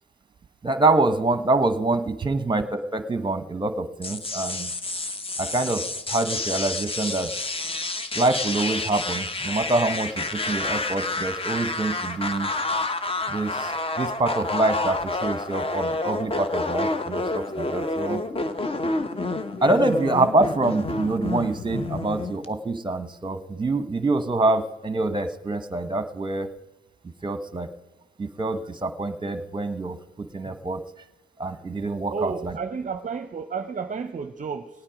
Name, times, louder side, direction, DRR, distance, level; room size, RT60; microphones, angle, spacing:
voice 1, 0.6-4.7 5.4-5.8 6.1-7.3 8.2-12.5 13.3-13.7 14.0-18.2 19.6-26.5 27.2-27.7 28.2-30.8 31.4-32.6, right 2 dB, 20° right, 11 dB, 1.0 m, -25 dB
sound 1, 4.0-22.5, left 2 dB, 25° left, 0.9 m, -29 dB
voice 2, 32.1-34.7, right 5 dB, 40° right, 8 dB, 0.6 m, -31 dB
18.5 x 8.8 x 5.0 m, 1.1 s
supercardioid pair, 55°, 20 cm